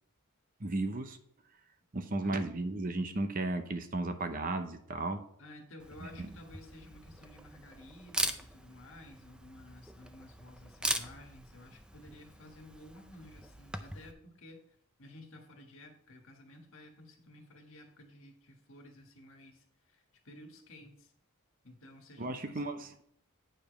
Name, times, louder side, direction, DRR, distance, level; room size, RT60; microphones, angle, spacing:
voice 1, 0.6-1.2 1.9-5.2 22.2-22.9, right 2 dB, 40° right, 8 dB, 0.7 m, -34 dB
voice 2, 5.4-21.1 21.6-22.7, left 1 dB, 60° left, 3 dB, 1.6 m, -53 dB
Camera, 5.8-14.1, right 1 dB, 5° right, 0.4 m, -41 dB
8.9 x 5.1 x 5.2 m, 0.66 s
head